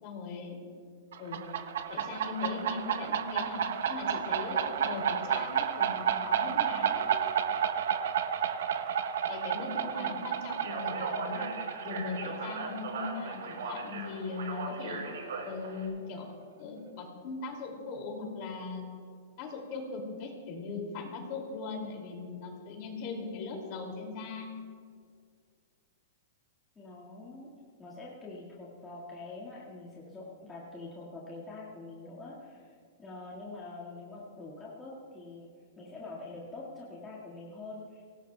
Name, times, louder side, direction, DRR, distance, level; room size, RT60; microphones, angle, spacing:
voice 1, 0.0-0.6 1.2-1.4 1.9-3.6 3.9-7.2 9.3-11.5 11.8-15.0 15.4-16.3 16.6-18.8 19.4-24.5, left 4 dB, 35° left, 1 dB, 2.5 m, -39 dB
sound 1, 1.1-14.5, right 8 dB, 65° right, 0.9 m, -32 dB
Speech, 10.5-15.9, right 3 dB, 80° right, 4.8 m, -39 dB
voice 2, 26.8-27.5 27.8-35.5 35.8-38.0, left 2 dB, 10° left, -7 dB, 1.8 m, -45 dB
24.0 x 18.0 x 2.3 m, 2.1 s
supercardioid pair, 180°, 0 cm